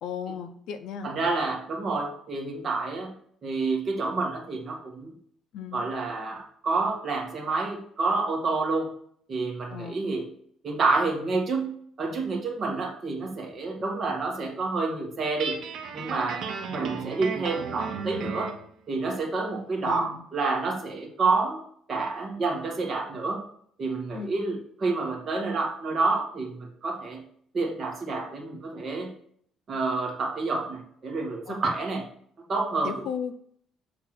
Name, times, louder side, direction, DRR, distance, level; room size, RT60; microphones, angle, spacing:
voice 1, 0.0-1.1 5.5-5.8 9.7-10.0 19.8-20.2 24.1-24.4 31.5-31.6 32.8-33.4, left 7 dB, 65° left, 7 dB, 0.5 m, -35 dB
voice 2, 1.0-3.1 3.4-5.1 5.7-8.9 9.3-10.3 10.6-15.6 15.9-18.5 18.9-21.6 21.9-23.4 23.8-27.2 27.5-29.1 29.7-32.1 32.5-33.0, right 3 dB, 35° right, 0 dB, 1.8 m, -28 dB
Guitar, 15.4-18.6, right 6 dB, 55° right, 0.9 m, -35 dB
7.6 x 3.6 x 5.9 m, 0.63 s
cardioid pair, 155°, 0 cm